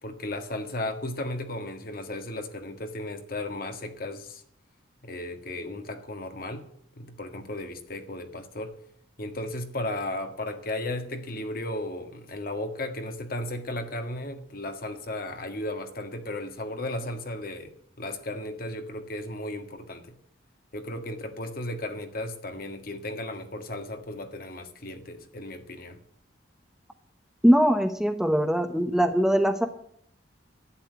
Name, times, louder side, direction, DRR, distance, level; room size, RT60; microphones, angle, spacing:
voice 1, 0.0-4.4 5.0-6.7 6.9-8.8 9.2-20.1 20.7-26.0, left 1 dB, 50° left, 1.6 m, -35 dB
voice 2, 27.4-29.7, equal, 5° right, 0.8 m, -21 dB
11.5 x 8.8 x 9.9 m
head